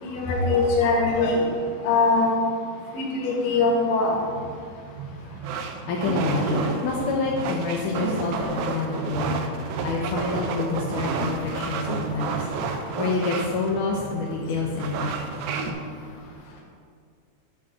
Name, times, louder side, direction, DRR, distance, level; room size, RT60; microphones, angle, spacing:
voice 1, 0.0-1.4 1.8-2.3 2.9-4.1, left 3 dB, 60° left, -2 dB, 1.9 m, -22 dB
sound 1, 4.1-15.7, right 4 dB, 80° right, 2.3 m, -31 dB
voice 2, 5.9-12.5 13.0-15.7, left 3 dB, 80° left, -2 dB, 1.8 m, -28 dB
8.6 x 3.6 x 6.2 m, 2.1 s
omnidirectional pair, 4.4 m